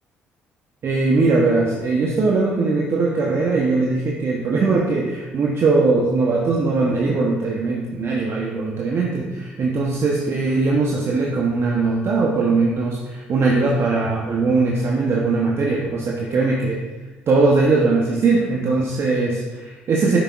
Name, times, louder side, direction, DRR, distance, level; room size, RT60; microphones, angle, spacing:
voice 1, 0.8-16.8 17.3-20.2, right 3 dB, 50° right, -2 dB, 0.8 m, -20 dB
6.6 x 6.0 x 2.4 m, 1.3 s
hypercardioid pair, 50°, 6 cm